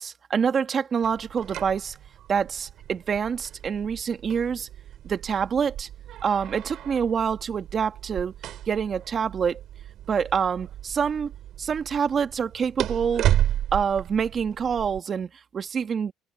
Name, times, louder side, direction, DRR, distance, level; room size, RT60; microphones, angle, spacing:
voice 1, 0.0-2.0 2.3-4.7 5.0-5.9 6.2-8.3 8.7-9.6 10.1-11.3 11.6-13.3 13.7-16.1, right 6 dB, 40° right, 1.9 m, -26 dB
sound 1, 1.0-15.0, right 12 dB, 65° right, 6.6 m, -33 dB
cardioid pair, 110°, 0 cm